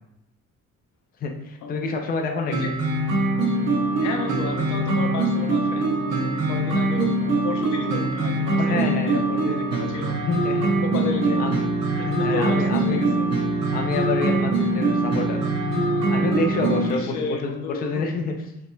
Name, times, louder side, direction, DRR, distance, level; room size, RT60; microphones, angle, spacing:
voice 1, 1.2-2.7 8.6-9.6 10.3-10.7 11.4-11.6 12.2-13.0 13.7-15.4 16.1-18.3, left 3 dB, 30° left, 2 dB, 0.5 m, -28 dB
sound 1, 2.5-16.9, right 2 dB, 60° right, 0.8 m, -23 dB
voice 2, 4.0-5.9 6.2-10.2 10.8-11.4 11.9-13.3 16.9-18.1, left 5 dB, 75° left, 3 dB, 0.8 m, -33 dB
5.5 x 3.0 x 2.3 m, 0.86 s
cardioid pair, 165°, 30 cm